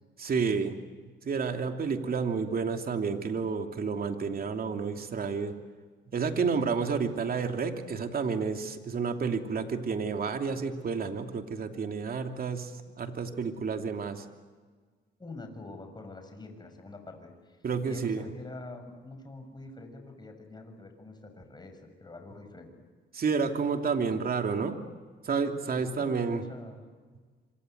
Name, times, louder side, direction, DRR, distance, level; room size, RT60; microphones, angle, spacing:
voice 1, 0.2-0.7 1.2-5.5 6.1-12.7 13.0-14.2 17.6-18.2 23.1-24.8 25.2-26.4, right 5 dB, 50° right, 5 dB, 2.9 m, -30 dB
voice 2, 15.2-22.7 25.7-26.8, left 2 dB, 20° left, 6 dB, 6.6 m, -45 dB
26.5 x 26.0 x 8.0 m, 1.5 s
cardioid pair, 90°, 20 cm